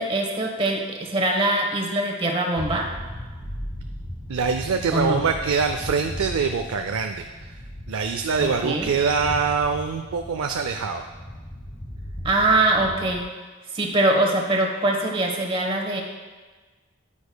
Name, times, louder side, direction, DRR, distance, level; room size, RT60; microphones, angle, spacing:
voice 1, 0.0-2.9 4.9-5.2 8.4-8.9 12.2-13.2 13.7-16.0, right 2 dB, 25° right, 1 dB, 1.1 m, -23 dB
sound 1, 2.6-13.2, equal, 25° left, 1.3 m, -37 dB
voice 2, 4.3-7.6 7.9-11.1, right 5 dB, 80° right, 5 dB, 0.4 m, -24 dB
9.9 x 9.6 x 2.2 m, 1.3 s
head